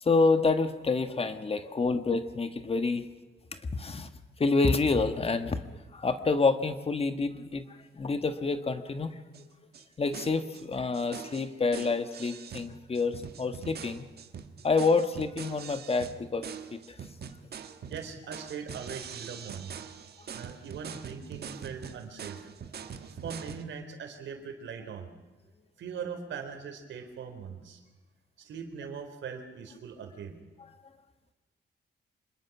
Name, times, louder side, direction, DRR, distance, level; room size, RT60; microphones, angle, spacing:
voice 1, 0.0-3.1 3.5-4.1 4.4-7.6 7.9-9.2 10.0-14.0 14.6-16.4 16.7-16.8, left 4 dB, 30° left, 9 dB, 1.5 m, -28 dB
sound 1, 9.3-9.4 9.7-9.8 10.1-10.6 10.9-23.6, right 7 dB, 60° right, 1.6 m, -43 dB
voice 2, 17.9-19.8 20.3-22.4 23.2-25.1 25.8-27.8 28.4-30.4, right 6 dB, 85° right, 6 dB, 3.6 m, -41 dB
26.0 x 21.5 x 6.0 m, 1.2 s
cardioid pair, 115°, 19 cm